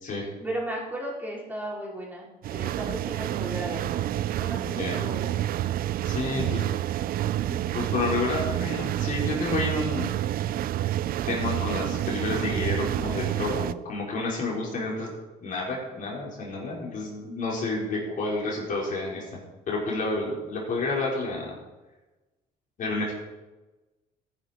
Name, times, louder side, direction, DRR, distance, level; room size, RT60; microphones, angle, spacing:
voice 1, 0.4-4.1 4.4-5.3, right 1 dB, 10° right, -4 dB, 4.6 m, -35 dB
sound 1, 2.4-13.7, right 13 dB, 60° right, 0.5 m, -29 dB
voice 2, 4.6-4.9 6.0-6.6 7.5-10.1 11.3-15.1 15.4-19.2 19.7-21.5 22.8-23.1, left 2 dB, 50° left, -3 dB, 4.7 m, -30 dB
14.0 x 11.0 x 4.5 m, 1.1 s
cardioid pair, 110°, 17 cm